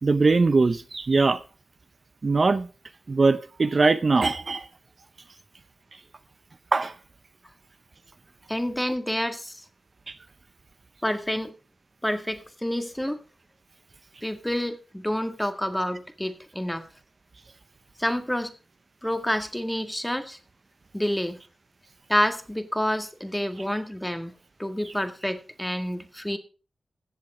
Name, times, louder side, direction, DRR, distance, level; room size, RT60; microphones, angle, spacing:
voice 1, 0.0-1.4 2.2-2.7 3.1-4.7 6.7-6.9 10.1-10.2, right 3 dB, 50° right, 0.7 m, -21 dB
voice 2, 8.5-9.6 11.0-11.5 12.0-13.2 14.2-16.8 18.0-18.5 19.0-20.4 20.9-21.4 22.1-24.3 24.6-26.4, equal, 10° left, 1.8 m, -28 dB
15.0 x 7.5 x 4.9 m
cardioid pair, 60°, 0 cm